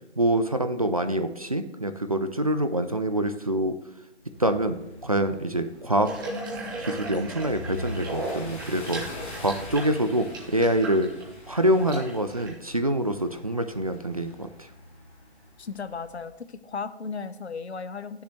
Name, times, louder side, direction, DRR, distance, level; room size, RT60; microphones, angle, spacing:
voice 1, 0.2-3.8 4.4-4.8 5.0-6.1 6.8-11.1 11.5-14.7, right 1 dB, 35° right, 9 dB, 0.4 m, -25 dB
sound 1, 4.2-16.4, left 2 dB, 10° left, 0.8 m, -43 dB
Water tap faucet / Bathtub (filling or washing), 6.0-12.5, right 2 dB, 20° right, 1.2 m, -37 dB
voice 2, 15.6-18.2, left 5 dB, 70° left, 12 dB, 0.8 m, -35 dB
9.3 x 6.9 x 3.1 m, 0.97 s
figure-of-eight pair, 155°, 34 cm